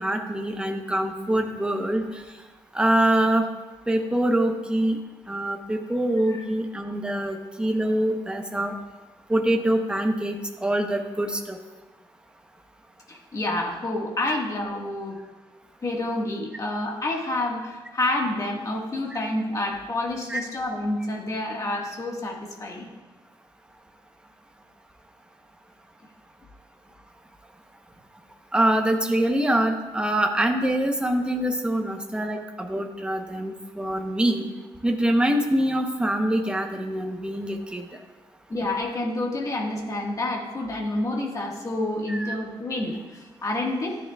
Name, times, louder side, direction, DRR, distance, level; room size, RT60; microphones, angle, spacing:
voice 1, 0.0-2.2 2.7-3.5 3.9-5.0 5.3-8.7 9.3-11.6 14.3-14.4 19.1-19.2 20.3-20.4 28.5-34.5 34.8-37.8 42.1-42.3, right 1 dB, 10° right, 3 dB, 0.9 m, -24 dB
voice 2, 13.1-15.2 15.8-22.9 38.5-44.0, left 2 dB, 35° left, 0 dB, 1.6 m, -28 dB
13.5 x 9.9 x 2.4 m, 1.2 s
wide cardioid pair, 135°, 10 cm